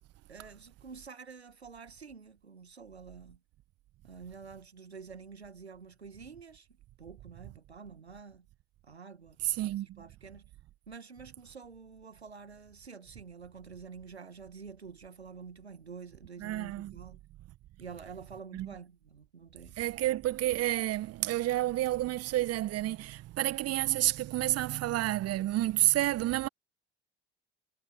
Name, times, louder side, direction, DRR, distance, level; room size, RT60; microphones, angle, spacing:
voice 1, 0.3-3.4 4.0-6.7 7.0-8.5 8.8-10.5 10.9-17.2 17.8-19.8, right 5 dB, 90° right, 1.5 m, -48 dB
voice 2, 9.4-10.0 16.4-17.0 18.5-18.7 19.8-26.5, right 15 dB, 50° right, 1.5 m, -30 dB
figure-of-eight pair, 55°, 32 cm